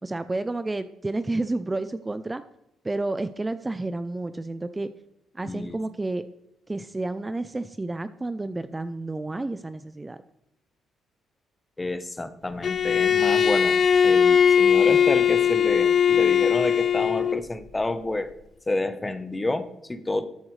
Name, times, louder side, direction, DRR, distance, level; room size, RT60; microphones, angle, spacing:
voice 1, 0.0-2.4 2.8-4.9 5.3-6.2 6.7-10.2, right 2 dB, 20° right, 12 dB, 0.5 m, -30 dB
voice 2, 5.4-5.8 11.8-13.8 14.0-18.3 18.7-20.3, left 2 dB, 15° left, 11 dB, 0.9 m, -29 dB
Bowed string instrument, 12.6-17.5, left 8 dB, 50° left, 0.4 m, -20 dB
13.5 x 8.5 x 3.2 m, 0.86 s
cardioid pair, 90°, 0 cm